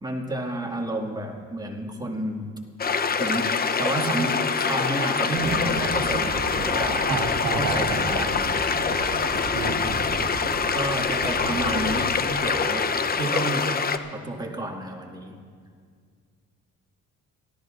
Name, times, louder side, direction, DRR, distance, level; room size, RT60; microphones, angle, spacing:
voice 1, 0.0-2.5 3.2-3.5 3.8-7.1 7.6-8.6 10.7-12.9 13.2-13.7 14.1-15.4, right 2 dB, 15° right, 0 dB, 2.0 m, -30 dB
sound 1, 2.8-14.0, left 5 dB, 30° left, 0.7 m, -25 dB
sound 2, 5.4-12.4, right 3 dB, 45° right, 1.3 m, -36 dB
voice 2, 7.1-8.0 9.5-10.0, right 4 dB, 85° right, 3 dB, 1.5 m, -29 dB
28.5 x 13.0 x 2.5 m, 2.1 s
cardioid pair, 90°, 30 cm